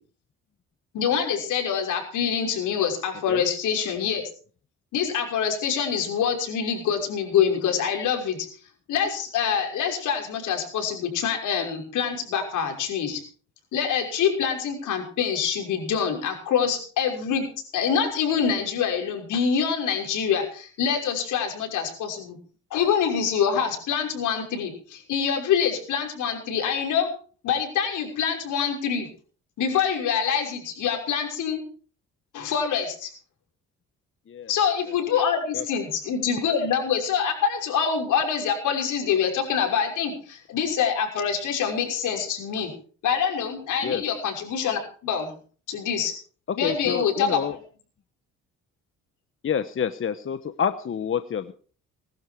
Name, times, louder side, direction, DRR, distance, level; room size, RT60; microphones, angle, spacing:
voice 1, 0.9-4.2 4.9-8.5 8.9-13.2 13.7-17.4 17.7-22.4 22.7-27.1 27.4-29.1 29.6-31.6 32.3-33.1 34.5-42.7 43.0-45.3 45.7-46.1 46.6-47.4, left 7 dB, 80° left, 2 dB, 6.0 m, -25 dB
voice 2, 46.5-47.6 49.4-51.5, left 7 dB, 45° left, 11 dB, 1.1 m, -28 dB
21.0 x 12.0 x 4.6 m, 0.41 s
cardioid pair, 90°, 30 cm